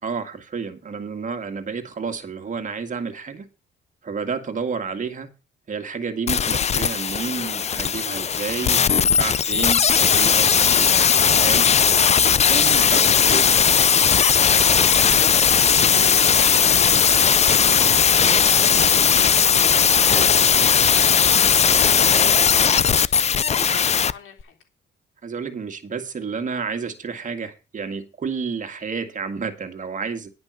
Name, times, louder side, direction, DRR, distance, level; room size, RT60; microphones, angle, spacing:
voice 1, 0.0-3.5 4.0-5.3 5.7-11.7 12.3-13.6 25.2-30.3, right 5 dB, 40° right, 2.0 m, -30 dB
sound 1, 6.3-24.1 24.4-24.5, left 7 dB, 35° left, 0.5 m, -17 dB
voice 2, 14.0-24.6, left 8 dB, 90° left, 3.7 m, -41 dB
11.0 x 6.0 x 6.2 m
cardioid pair, 90°, 20 cm